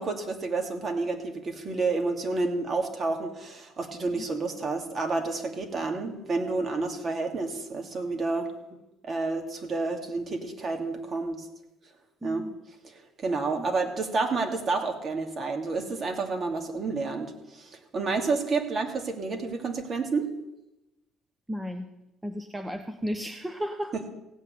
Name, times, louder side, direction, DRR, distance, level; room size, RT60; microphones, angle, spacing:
voice 1, 0.0-8.5 9.0-11.5 12.2-12.4 12.8-12.9 13.2-20.3 23.9-24.1, right 3 dB, 40° right, 4 dB, 2.6 m, -30 dB
voice 2, 12.2-12.5 13.6-13.7 21.5-21.9 22.2-23.9, equal, 10° right, 7 dB, 1.0 m, -34 dB
16.0 x 6.5 x 9.6 m, 0.95 s
supercardioid pair, 85°, 0 cm